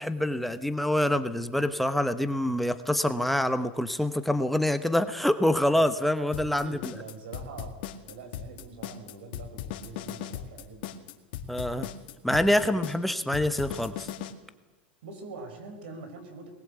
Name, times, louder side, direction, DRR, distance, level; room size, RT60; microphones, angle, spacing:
voice 1, 0.0-6.8 11.5-11.9 12.2-14.1, left 1 dB, ahead, 9 dB, 1.0 m, -26 dB
sound 1, 6.3-14.3, left 10 dB, 65° left, 2.1 m, -38 dB
voice 2, 6.6-7.8 8.0-11.0 12.6-13.3 15.0-16.5, right 3 dB, 75° right, 7 dB, 5.3 m, -44 dB
20.5 x 19.0 x 8.2 m, 1.1 s
hypercardioid pair, 115°, 6 cm